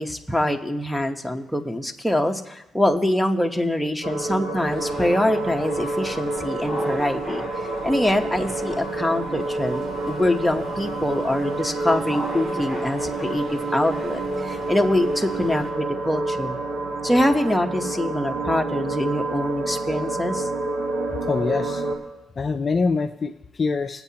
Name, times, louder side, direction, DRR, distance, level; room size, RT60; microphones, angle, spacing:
voice 1, 0.0-16.6 17.0-20.5, left 1 dB, ahead, 3 dB, 1.0 m, -24 dB
sound 1, 4.0-22.0, right 2 dB, 65° right, 1.8 m, -28 dB
sound 2, 4.5-15.7, equal, 30° right, 3.7 m, -39 dB
voice 2, 21.3-21.8 22.4-24.0, left 4 dB, 40° left, 8 dB, 0.5 m, -24 dB
20.0 x 8.2 x 2.9 m, 0.97 s
cardioid pair, 90°, 0 cm